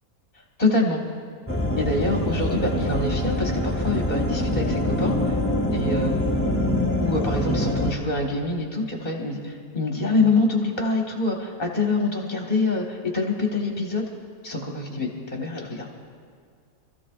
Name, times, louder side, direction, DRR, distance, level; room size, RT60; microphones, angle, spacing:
voice 1, 0.6-1.0 1.8-5.4 5.7-6.3 7.0-14.0 14.4-15.9, left 3 dB, 35° left, -1 dB, 1.5 m, -25 dB
sound 1, 1.5-7.9, left 1 dB, 10° left, 0.7 m, -24 dB
26.0 x 14.5 x 2.5 m, 2.1 s
omnidirectional pair, 1.5 m